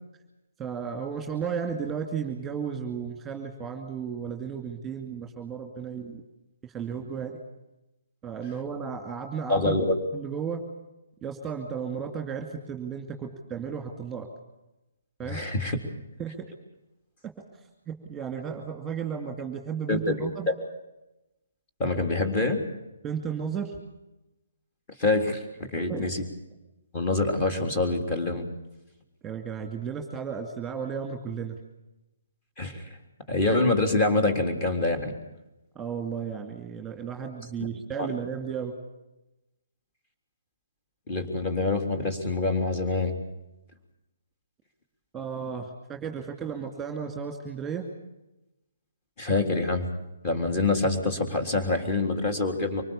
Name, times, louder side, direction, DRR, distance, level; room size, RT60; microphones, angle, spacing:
voice 1, 0.6-6.2 6.6-7.4 8.2-9.8 10.1-10.6 11.2-14.3 15.2-15.4 16.2-16.5 17.2-17.3 17.9-20.5 23.0-23.8 25.8-26.1 29.2-31.6 35.7-38.7 45.1-47.9, right 7 dB, 10° right, 3 dB, 2.5 m, -34 dB
voice 2, 9.5-10.0 15.3-15.8 19.9-20.0 21.8-22.6 25.0-26.2 26.9-28.5 32.6-32.8 33.3-35.1 38.0-38.1 41.1-43.2 49.2-49.9 50.2-52.8, left 2 dB, 25° left, 6 dB, 3.5 m, -25 dB
25.0 x 19.5 x 7.2 m, 0.98 s
hypercardioid pair, 150°, 0 cm